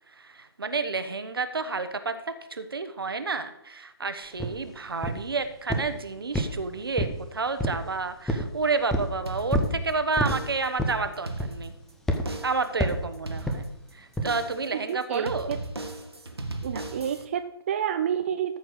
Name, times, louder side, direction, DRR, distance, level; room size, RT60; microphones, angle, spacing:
voice 1, 0.1-11.7 12.3-13.7 13.9-15.5, right 4 dB, 65° right, 10 dB, 1.1 m, -30 dB
sound 1, 4.4-4.5 5.0-5.3 5.7-6.0 6.3-7.2 7.6-7.9 8.3-8.5 8.9-9.1 9.5-9.8 10.2-10.4 10.8-11.1 11.4-11.7 12.1-12.3 12.8-13.1 13.5-13.6 14.2-14.3, equal, 5° left, 0.7 m, -27 dB
sound 2, 9.3-9.9 10.3-10.8 11.1-11.9 12.3-12.7 13.3-13.9 14.3-14.7 15.3-17.3, right 2 dB, 80° right, 1.5 m, -37 dB
voice 2, 14.7-15.3 16.6-18.6, right 9 dB, 30° right, 9 dB, 0.4 m, -29 dB
13.5 x 4.6 x 6.4 m, 0.83 s
figure-of-eight pair, 135°, 13 cm